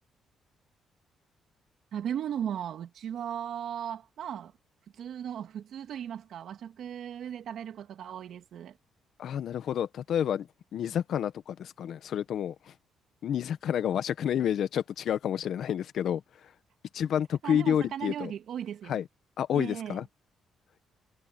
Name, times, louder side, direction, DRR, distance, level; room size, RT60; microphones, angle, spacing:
voice 1, 1.9-4.5 4.9-8.8 17.4-19.0 19.5-20.0, right 9 dB, 70° right, 2.4 m, -37 dB
voice 2, 9.2-12.7 13.2-16.2 16.9-18.3 18.9-19.0 19.4-20.0, left 9 dB, 70° left, 1.5 m, -29 dB
cardioid pair, 90°, 0 cm